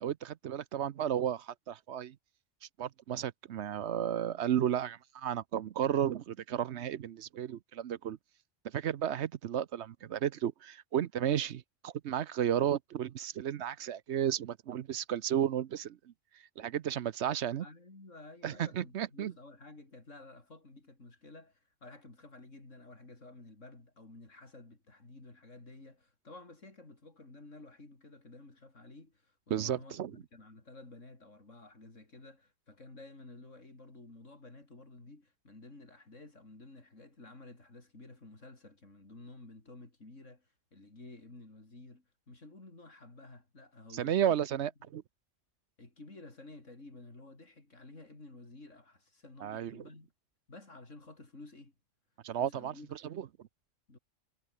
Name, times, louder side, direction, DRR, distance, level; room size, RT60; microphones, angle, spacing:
voice 1, 0.0-2.2 2.8-8.2 8.6-16.0 16.6-17.7 18.4-19.3 29.5-30.1 43.9-45.0 49.4-49.8 52.2-53.3, right 10 dB, 65° right, 1.0 m, -33 dB
voice 2, 17.6-44.4 45.8-50.1 50.5-51.7 52.4-53.2 53.9-54.0, left 2 dB, 80° left, 4.9 m, -52 dB
omnidirectional pair, 1.3 m